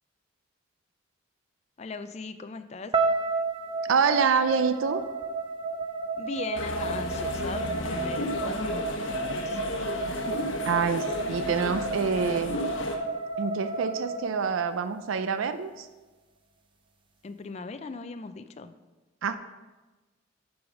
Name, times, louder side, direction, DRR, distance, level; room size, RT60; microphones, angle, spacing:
voice 1, 1.8-2.9 6.2-10.4 17.2-18.8, left 3 dB, 35° left, 10 dB, 0.4 m, -39 dB
sound 1, 2.9-15.1, right 3 dB, 25° right, 0.6 m, -32 dB
voice 2, 3.8-5.0 10.7-12.6 13.4-15.9 19.2-19.3, right 5 dB, 85° right, 10 dB, 0.4 m, -26 dB
sound 2, 6.5-13.0, left 2 dB, 80° left, 0.9 m, -34 dB
8.4 x 4.9 x 5.1 m, 1.2 s
head